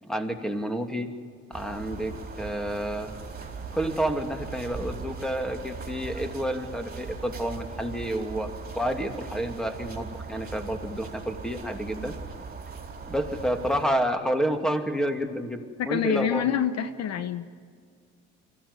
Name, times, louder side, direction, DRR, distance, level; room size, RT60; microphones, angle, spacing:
voice 1, 0.0-1.1 1.5-3.1 3.7-8.5 8.7-12.1 13.1-16.5, right 1 dB, ahead, 5 dB, 2.6 m, -29 dB
sound 1, 1.5-13.9, right 4 dB, 30° right, 4.3 m, -39 dB
voice 2, 15.8-17.5, left 9 dB, 55° left, 11 dB, 1.1 m, -26 dB
24.0 x 16.0 x 9.8 m, 2.1 s
supercardioid pair, 85°, 31 cm